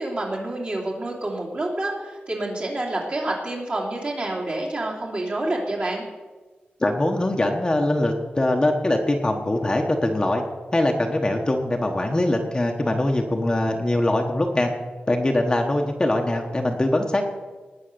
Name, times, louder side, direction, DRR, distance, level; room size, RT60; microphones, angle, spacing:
voice 1, 0.0-6.0, right 2 dB, 40° right, -3 dB, 2.9 m, -28 dB
voice 2, 6.8-10.4 10.7-14.7 15.1-17.2, left 1 dB, 20° left, 2 dB, 1.2 m, -22 dB
19.5 x 6.8 x 6.8 m, 1.4 s
wide cardioid pair, 140°, 4 cm